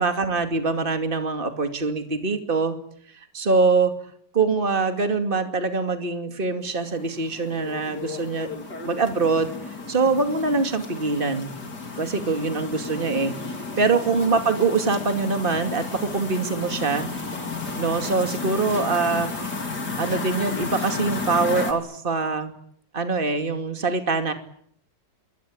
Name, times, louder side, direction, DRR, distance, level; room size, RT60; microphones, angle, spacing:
voice 1, 0.0-2.7 3.1-3.9 4.3-11.5 12.0-13.3 13.8-17.1 17.7-22.5 22.9-24.3, right 4 dB, 25° right, 6 dB, 2.6 m, -24 dB
sound 1, 6.6-21.7, left 3 dB, 55° left, 4.2 m, -33 dB
28.0 x 23.0 x 8.8 m, 0.66 s
omnidirectional pair, 2.0 m